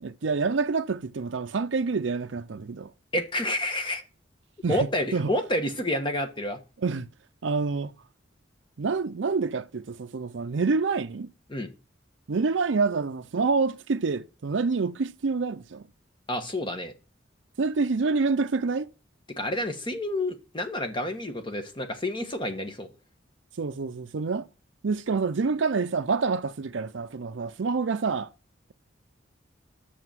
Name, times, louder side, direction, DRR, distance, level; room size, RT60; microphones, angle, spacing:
voice 1, 0.0-2.9 4.6-4.8 5.1-5.3 6.8-7.1 7.4-7.9 8.8-11.3 12.3-15.9 17.6-18.9 23.6-24.5 24.8-28.3, right 4 dB, 75° right, 0.5 m, -27 dB
voice 2, 3.1-4.0 4.7-6.6 11.5-11.7 16.3-16.9 19.4-22.9, left 1 dB, 25° left, 1.3 m, -29 dB
7.9 x 6.5 x 7.5 m
head